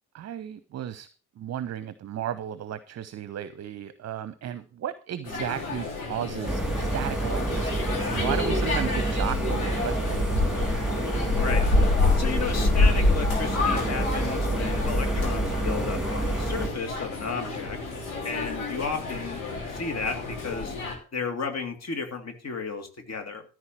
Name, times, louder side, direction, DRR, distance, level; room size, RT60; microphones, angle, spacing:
voice 1, 0.1-1.1 1.4-7.7 8.1-10.4, right 10 dB, 40° right, 14 dB, 0.8 m, -34 dB
sound 1, 5.2-20.9, left 3 dB, 75° left, 3.0 m, -28 dB
sound 2, 6.4-16.7, right 2 dB, ahead, 2.5 m, -28 dB
voice 2, 12.2-17.8 18.2-19.4 19.7-20.8 21.1-23.4, left 5 dB, 35° left, 6 dB, 2.6 m, -33 dB
14.0 x 4.8 x 7.4 m, 0.36 s
figure-of-eight pair, 45°, 42 cm